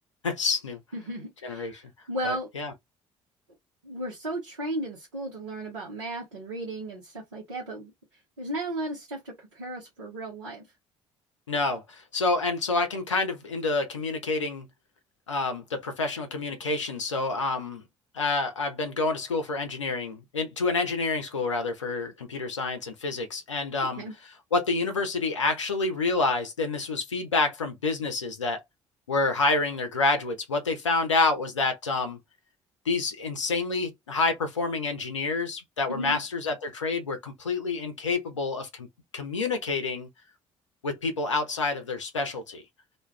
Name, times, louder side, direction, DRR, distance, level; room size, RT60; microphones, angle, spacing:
voice 1, 0.2-0.8 1.4-1.8 2.2-2.7 11.5-14.7 15.3-17.8 18.1-24.0 24.5-28.6 29.1-32.2 32.9-38.9 39.1-40.1 40.8-42.6, left 3 dB, 85° left, 0.6 m, -28 dB
voice 2, 0.9-1.8 2.1-2.5 3.8-7.9 8.4-10.6 23.9-24.1 35.9-36.2, right 1 dB, 80° right, 1.0 m, -35 dB
2.5 x 2.3 x 3.2 m
figure-of-eight pair, 50°, 15 cm